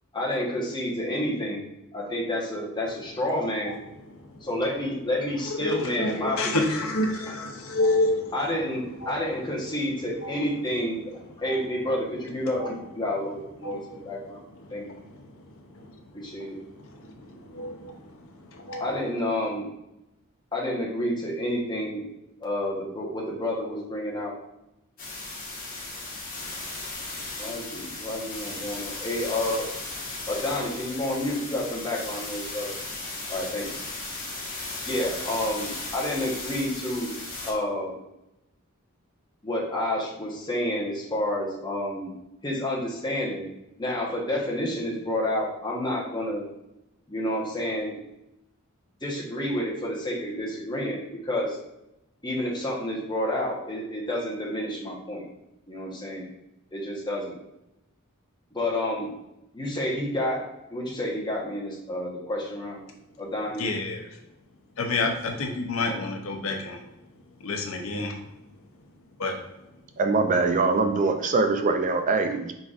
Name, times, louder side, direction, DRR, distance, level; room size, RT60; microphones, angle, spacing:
voice 1, 0.1-1.7 1.9-3.8 4.4-6.9 8.3-11.0 11.4-14.4 14.7-14.8 16.1-16.6 18.8-19.7 20.5-22.0 22.4-24.3 27.4-29.7 30.3-32.7 33.3-33.8 34.9-37.1 37.4-37.9 39.4-42.1 42.4-43.5 43.8-46.4 47.1-48.0 49.0-51.6 52.2-55.2 55.7-56.3 56.7-57.4 58.5-59.1 59.5-60.4 60.7-62.8 63.2-63.7, left 1 dB, 20° left, -4 dB, 1.0 m, -29 dB
voice 2, 5.5-8.3 9.0-9.2 10.2-10.4 11.5-11.6 12.6-12.8 13.6-14.1 14.7-15.2 15.8-16.0 16.9-18.9 63.6-64.1 64.8-66.8 67.4-68.2 69.2-69.4, left 2 dB, 75° left, 3 dB, 0.7 m, -29 dB
sound 1, 25.0-37.5, left 2 dB, 40° left, 1.3 m, -36 dB
voice 3, 70.0-72.5, right 3 dB, 35° right, 5 dB, 0.4 m, -23 dB
4.7 x 4.0 x 2.5 m, 0.90 s
head